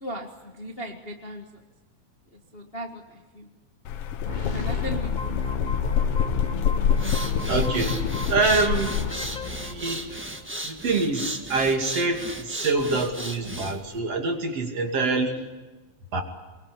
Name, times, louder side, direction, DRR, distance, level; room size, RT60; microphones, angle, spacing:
voice 1, 0.0-1.5 2.5-3.5 4.5-5.3, right 1 dB, 25° left, 2 dB, 1.4 m, -36 dB
sound 1, 3.8-9.1, left 8 dB, 65° left, 1.7 m, -26 dB
sound 2, 4.3-10.4, left 3 dB, 80° left, 0.4 m, -33 dB
sound 3, 6.8-14.0, right 1 dB, 15° right, 0.4 m, -36 dB
voice 2, 7.5-9.1 9.4-10.3 10.6-15.4 16.1-16.2, right 3 dB, 55° right, 3 dB, 3.6 m, -26 dB
23.5 x 22.5 x 8.4 m, 1.2 s
omnidirectional pair, 3.4 m